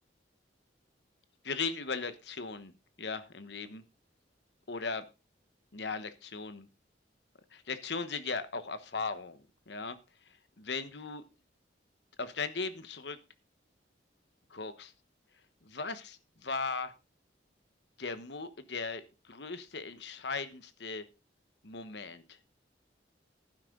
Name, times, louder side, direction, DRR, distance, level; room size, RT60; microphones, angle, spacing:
voice 1, 1.4-2.7 3.0-3.8 4.7-5.0 5.7-6.7 7.5-10.0 10.6-11.2 12.2-13.2 14.5-14.9 15.7-16.0 16.4-16.9 18.0-21.0 21.6-22.4, left 4 dB, 65° left, 12 dB, 1.2 m, -37 dB
11.5 x 10.0 x 3.9 m, 0.28 s
head